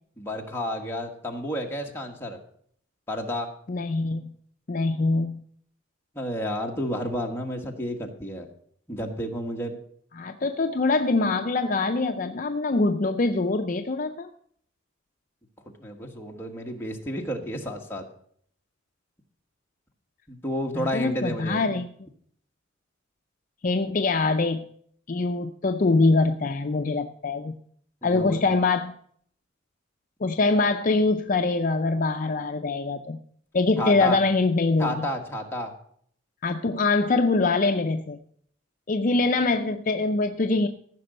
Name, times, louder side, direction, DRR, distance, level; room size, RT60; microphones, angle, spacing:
voice 1, 0.2-2.4 3.1-3.5 6.1-8.5 8.9-9.8 15.8-18.0 20.3-21.6 28.0-28.4 33.8-34.2 34.8-35.7, equal, 10° left, 0 dB, 1.3 m, -31 dB
voice 2, 3.7-4.3 4.7-5.4 10.1-14.3 20.7-21.9 23.6-24.7 25.1-27.5 28.0-28.9 30.2-33.2 33.5-35.1 36.4-38.2 38.9-40.7, left 3 dB, 40° left, 6 dB, 0.5 m, -24 dB
14.5 x 6.0 x 6.5 m, 0.64 s
head